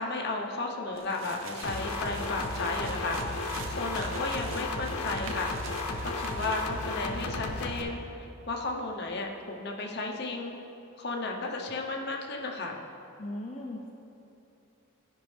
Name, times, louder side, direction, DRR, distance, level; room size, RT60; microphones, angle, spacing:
voice 1, 0.0-5.5 6.0-10.5 11.0-12.8, left 3 dB, 50° left, 1 dB, 0.8 m, -34 dB
sound 1, 0.9-6.9, right 3 dB, 60° right, 0.7 m, -44 dB
sound 2, 1.6-7.8, left 2 dB, 80° left, 0.8 m, -34 dB
voice 2, 13.2-13.9, left 1 dB, 30° left, -2 dB, 0.5 m, -38 dB
13.5 x 5.3 x 3.3 m, 2.9 s
head